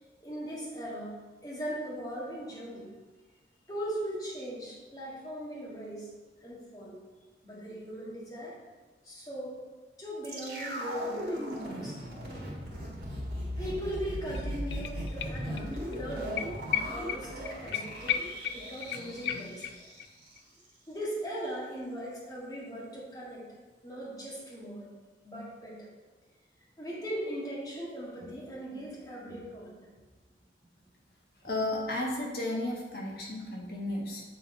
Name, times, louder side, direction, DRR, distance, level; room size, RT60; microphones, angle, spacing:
voice 1, 0.2-1.1 1.4-2.9 3.7-6.1 6.4-7.0 7.4-8.6 9.0-9.6 10.0-12.1 13.6-16.5 16.8-19.7 20.9-23.5 23.8-24.9 25.2-25.9 26.8-29.8, right 1 dB, 20° left, -7 dB, 1.9 m, -39 dB
sound 1, 10.2-20.4 20.6-20.7, equal, 60° right, 1.7 m, -38 dB
sound 2, 13.9-14.0 14.3-15.7 15.9-16.0 16.4-20.0 20.4-20.5, left 8 dB, 75° left, 0.4 m, -35 dB
voice 2, 31.4-34.2, left 1 dB, 60° left, -2 dB, 1.2 m, -33 dB
7.5 x 4.0 x 4.5 m, 1.3 s
head